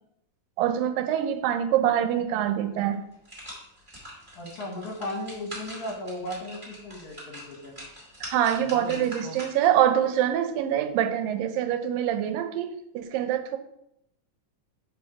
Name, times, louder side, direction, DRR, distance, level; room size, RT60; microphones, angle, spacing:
voice 1, 0.6-3.0 8.2-13.6, right 10 dB, 85° right, 8 dB, 2.3 m, -25 dB
sound 1, 2.4-2.5 2.9-9.8 10.2-10.3, equal, 10° right, 1.7 m, -43 dB
voice 2, 4.4-7.8 8.6-9.4, left 1 dB, 65° left, 1 dB, 2.2 m, -36 dB
5.0 x 4.2 x 5.8 m, 0.79 s
omnidirectional pair, 4.0 m